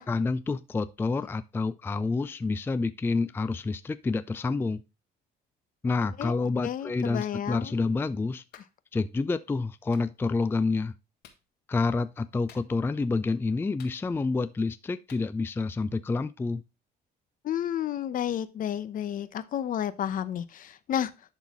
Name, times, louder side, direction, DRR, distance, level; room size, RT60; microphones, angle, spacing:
voice 1, 0.1-4.8 5.8-8.4 8.9-10.9 11.7-16.6, left 3 dB, 15° left, 0.4 m, -28 dB
voice 2, 6.6-7.7 17.4-21.1, left 10 dB, 55° left, 0.8 m, -31 dB
Clapping, 7.2-7.4 8.5-8.7 9.9-10.1 11.2-11.4 12.5-12.9 13.8-14.4 15.1-15.3, left 8 dB, 75° left, 1.6 m, -53 dB
11.5 x 4.1 x 3.6 m
cardioid pair, 110°, 17 cm